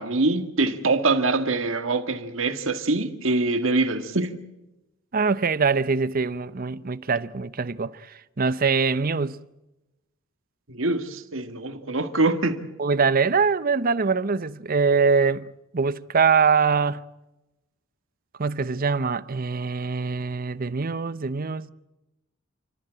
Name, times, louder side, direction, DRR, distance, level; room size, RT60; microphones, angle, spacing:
voice 1, 0.0-4.4 10.7-12.7, right 3 dB, 70° right, 1.9 m, -24 dB
voice 2, 5.1-9.4 12.8-17.0 18.4-21.7, right 5 dB, 45° right, 0.7 m, -23 dB
29.5 x 14.0 x 9.0 m
head